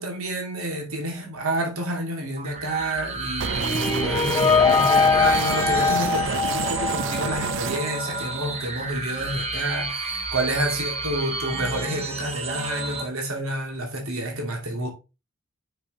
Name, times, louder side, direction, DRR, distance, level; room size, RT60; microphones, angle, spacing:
voice 1, 0.0-14.9, right 1 dB, 80° right, 2.6 m, -29 dB
sound 1, 2.4-13.0, right 2 dB, 30° right, 1.4 m, -31 dB
sound 2, 3.4-7.8, right 7 dB, 60° right, 0.4 m, -30 dB
sound 3, 3.6-7.5, left 5 dB, 20° left, 0.5 m, -22 dB
6.8 x 6.5 x 3.1 m
head